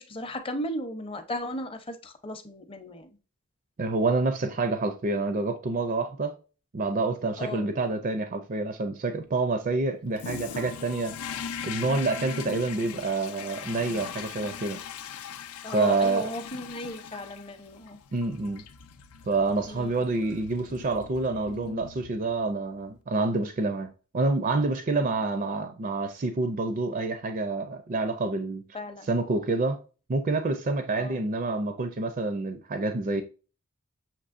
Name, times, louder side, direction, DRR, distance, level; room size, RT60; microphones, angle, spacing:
voice 1, 0.0-3.1 7.4-7.7 15.6-18.0 19.7-20.1 25.0-25.2 28.7-29.1 30.9-31.2, left 1 dB, 25° left, 0.6 m, -36 dB
voice 2, 3.8-6.3 6.7-11.1 11.6-14.8 15.7-16.3 18.1-18.6 19.3-23.9 24.1-28.6 29.1-29.8 30.1-33.2, right 3 dB, 40° right, 0.4 m, -27 dB
Toilet flush, 10.2-22.5, left 7 dB, 85° left, 0.5 m, -40 dB
6.6 x 3.0 x 2.5 m
head